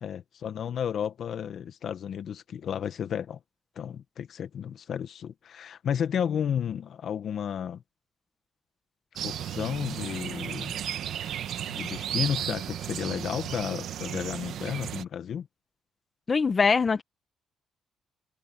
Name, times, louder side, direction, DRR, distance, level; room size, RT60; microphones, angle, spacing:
voice 1, 0.0-3.4 3.8-7.8 9.2-10.8 11.7-15.5, left 8 dB, 65° left, 1.2 m, -32 dB
sound 1, 9.2-15.0, right 10 dB, 75° right, 1.0 m, -34 dB
voice 2, 16.3-17.0, left 5 dB, 35° left, 1.4 m, -22 dB
cardioid pair, 90°, 0 cm